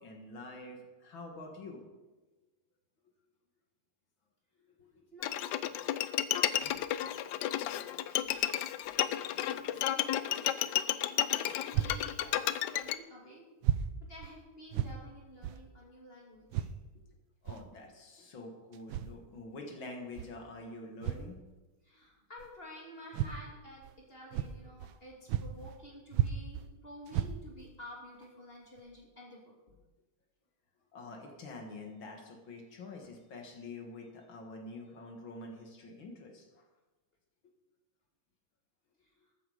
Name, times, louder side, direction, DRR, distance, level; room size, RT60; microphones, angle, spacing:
voice 1, 0.0-1.8 4.8-5.1 6.1-6.3 17.4-21.4 30.9-36.6, left 2 dB, 65° left, 2 dB, 2.4 m, -47 dB
Bowed string instrument, 5.2-12.9, left 12 dB, 90° left, 0.9 m, -32 dB
voice 2, 6.6-7.0 7.6-7.7 9.4-13.5 14.1-16.7 21.9-23.8 24.1-29.4, equal, 25° left, -2 dB, 2.9 m, -51 dB
sound 1, 11.7-12.0 12.8-12.9 13.6-13.9 14.2-14.3 14.7-14.9 15.4-15.6 16.5-16.7 17.4-17.6 18.7-19.1 20.1-20.3 21.0-21.3 22.4-22.5 23.1-23.4 23.8-23.9 24.3-25.0 25.3-25.8 26.1-26.7 27.1-27.7 28.2-28.3 28.8-28.9, right 11 dB, 75° right, 1.4 m, -33 dB
14.0 x 9.7 x 5.0 m, 1.2 s
omnidirectional pair, 2.4 m